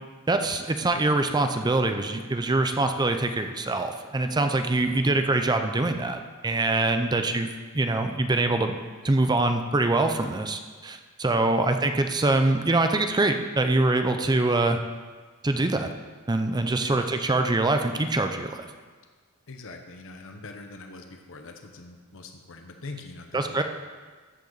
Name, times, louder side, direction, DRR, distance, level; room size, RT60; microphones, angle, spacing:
voice 1, 0.3-7.5 7.7-8.8 9.0-14.8 15.4-15.9 16.3-18.7 23.3-23.6, right 2 dB, 20° right, 7 dB, 0.6 m, -24 dB
voice 2, 7.0-7.3 11.4-11.6 16.8-17.1 19.5-23.6, left 3 dB, 60° left, 4 dB, 1.0 m, -43 dB
13.5 x 7.9 x 4.0 m, 1.4 s
head